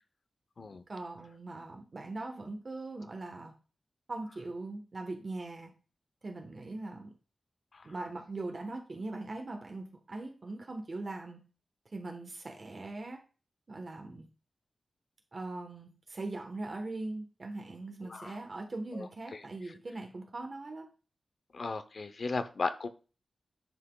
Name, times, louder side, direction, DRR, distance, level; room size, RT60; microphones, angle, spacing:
voice 1, 0.9-3.5 4.1-5.7 6.2-7.1 7.8-11.4 11.9-13.2 13.7-14.3 15.3-20.9, right 2 dB, 40° right, 3 dB, 1.1 m, -41 dB
voice 2, 21.5-22.9, left 3 dB, 55° left, 10 dB, 0.6 m, -35 dB
10.0 x 5.7 x 2.3 m, 0.35 s
wide cardioid pair, 145°, 0 cm